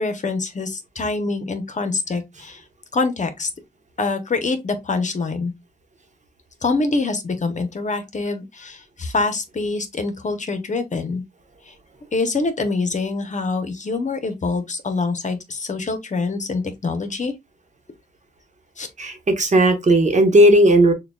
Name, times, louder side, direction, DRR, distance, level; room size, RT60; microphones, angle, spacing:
voice 1, 0.0-2.6 2.9-3.5 4.0-5.5 6.6-11.2 11.7-11.8 12.1-17.3 18.8-18.9, left 3 dB, 45° left, 0.9 m, -25 dB
voice 2, 19.0-20.9, right 1 dB, 45° right, 1.0 m, -15 dB
6.5 x 2.3 x 2.3 m
wide cardioid pair, 90°, 17 cm